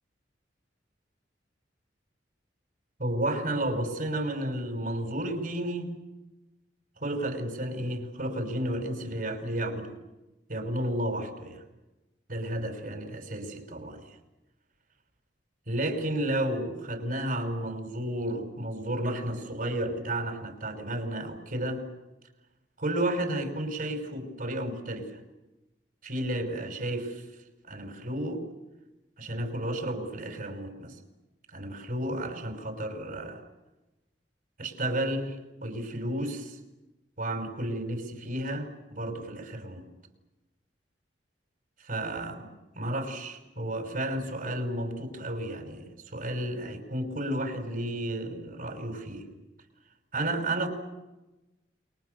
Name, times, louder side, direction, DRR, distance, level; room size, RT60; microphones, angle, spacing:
voice 1, 3.0-5.9 7.0-10.0 10.5-11.6 12.3-14.0 15.7-21.8 22.8-25.1 26.0-27.2 27.7-28.4 29.2-30.9 31.5-33.4 34.6-35.4 35.6-36.6 37.2-39.8 41.8-42.5 42.8-45.8 46.1-49.3 50.1-50.7, right 1 dB, 55° right, 5 dB, 5.6 m, -32 dB
29.5 x 23.5 x 6.9 m, 1.0 s
head